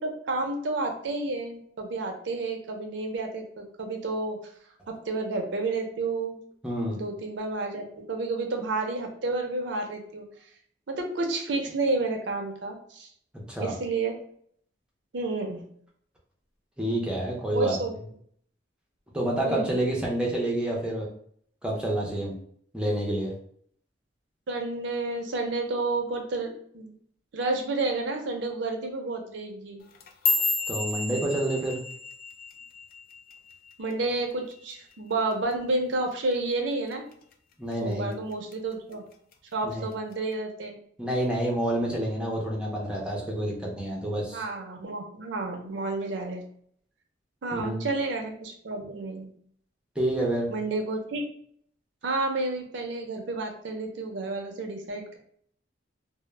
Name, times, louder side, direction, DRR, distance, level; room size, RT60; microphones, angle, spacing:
voice 1, 0.0-4.4 4.9-6.4 6.9-10.3 10.9-13.1 13.6-14.2 15.1-15.6 17.5-18.0 19.4-19.8 24.5-26.9 27.3-29.8 33.8-37.0 37.8-39.0 39.5-40.8 44.3-46.4 47.4-49.3 50.5-51.2 52.0-55.2, right 2 dB, 70° right, 3 dB, 0.5 m, -30 dB
voice 2, 6.6-7.0 13.5-13.7 16.8-17.8 19.1-21.1 21.6-22.3 22.7-23.3 30.7-31.8 37.6-38.1 39.6-39.9 41.0-44.5 47.5-47.9 50.0-50.5, right 1 dB, 5° right, -2 dB, 0.5 m, -28 dB
sound 1, 29.8-34.2 34.5-34.9 35.3-35.7 36.1-36.3 36.9-37.3 37.7-38.5 38.9-39.3 40.1-40.2, left 3 dB, 50° left, 0.3 m, -31 dB
2.1 x 2.0 x 3.1 m, 0.63 s
head